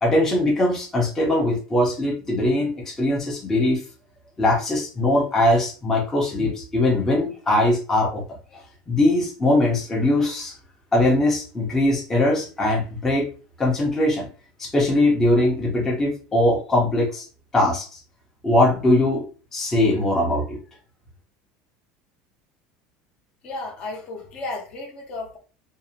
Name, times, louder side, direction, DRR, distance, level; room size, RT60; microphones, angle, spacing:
voice 1, 0.0-3.8 4.4-8.2 8.9-10.5 10.9-13.3 13.6-14.3 14.6-17.2 17.5-17.9 18.4-19.3 19.5-20.6, left 1 dB, 15° left, 0.6 m, -21 dB
voice 2, 23.4-25.4, left 2 dB, 45° left, 0.7 m, -33 dB
2.6 x 2.0 x 2.7 m
cardioid pair, 150°, 3 cm